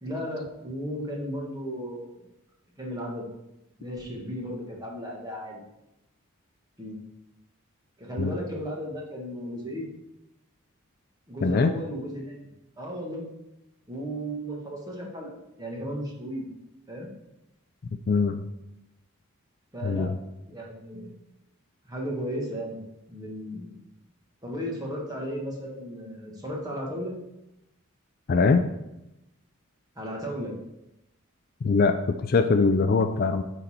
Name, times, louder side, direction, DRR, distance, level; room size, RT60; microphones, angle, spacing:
voice 1, 0.0-2.3 2.8-3.3 3.8-5.6 6.8-7.0 8.0-9.9 11.3-12.4 12.8-13.2 13.9-15.3 15.6-16.5 16.9-17.1 19.7-20.1 20.5-21.1 21.8-22.8 23.1-23.7 24.4-27.1 29.9-30.5, equal, 15° right, -2 dB, 1.5 m, -35 dB
voice 2, 18.1-18.4 19.8-20.1 28.3-28.6 31.6-33.4, left 4 dB, 45° left, 8 dB, 0.3 m, -22 dB
9.5 x 4.0 x 4.2 m, 0.91 s
head